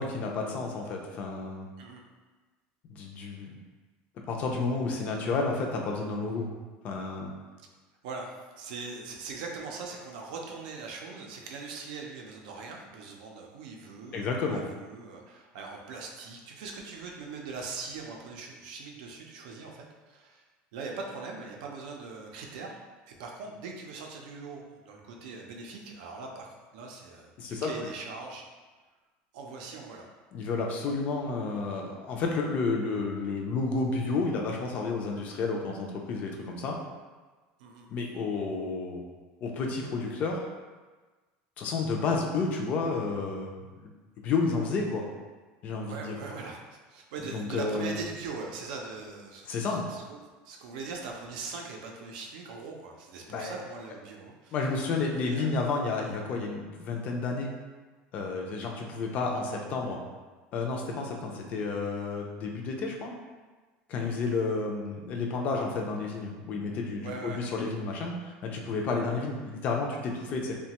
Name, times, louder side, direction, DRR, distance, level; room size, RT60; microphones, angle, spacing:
voice 1, 0.0-1.7 2.9-3.6 4.3-6.5 6.8-7.3 14.1-14.6 27.4-27.7 30.3-36.8 37.9-39.0 39.4-40.5 41.6-43.5 44.2-45.0 45.6-46.2 47.3-47.9 49.5-49.9 53.3-53.6 54.5-57.5 58.1-60.0 60.5-63.1 63.9-70.5, left 3 dB, 35° left, 1 dB, 0.4 m, -31 dB
voice 2, 8.0-20.4 20.7-22.8 23.1-26.5 26.7-28.4 29.3-30.1 37.6-37.9 45.8-50.0 50.4-54.6 55.2-55.5 64.0-64.2 67.0-67.4, right 4 dB, 80° right, 0 dB, 0.5 m, -41 dB
2.9 x 2.2 x 2.8 m, 1.3 s
cardioid pair, 170°, 4 cm